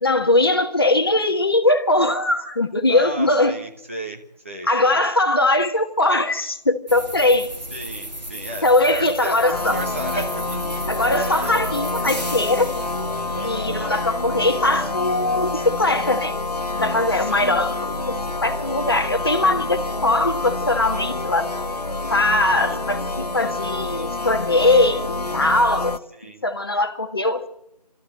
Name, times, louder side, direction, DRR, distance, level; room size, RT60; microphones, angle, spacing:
voice 1, 0.0-3.5 4.7-7.5 8.6-9.8 10.1-10.3 10.9-12.7 13.4-16.4 16.8-18.2 18.4-21.5 22.1-25.9 26.4-27.5, left 2 dB, 35° left, 7 dB, 1.5 m, -20 dB
voice 2, 2.9-5.0 7.7-10.8 11.3-11.6 13.3-14.0 17.2-17.6 22.4-22.8 26.1-26.4, right 1 dB, 20° right, 1 dB, 1.3 m, -35 dB
sound 1, 6.9-12.4, right 1 dB, 85° right, 2.3 m, -35 dB
sound 2, 9.5-26.0, left 2 dB, 65° left, 1.3 m, -27 dB
sound 3, 12.1-13.6, left 1 dB, ahead, 2.0 m, -36 dB
25.5 x 14.0 x 8.1 m, 0.80 s
figure-of-eight pair, 165°, 21 cm